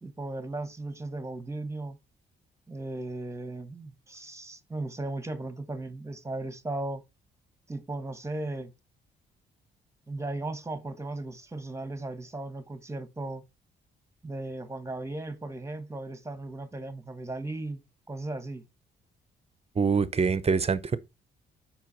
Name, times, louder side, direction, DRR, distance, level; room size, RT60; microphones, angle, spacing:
voice 1, 0.0-2.0 2.7-7.0 7.7-8.7 10.1-13.4 14.2-17.8 18.1-18.6, right 2 dB, 15° right, 1.3 m, -36 dB
voice 2, 19.8-21.0, right 5 dB, 30° right, 0.8 m, -25 dB
5.9 x 4.5 x 4.2 m
supercardioid pair, 60°, 20 cm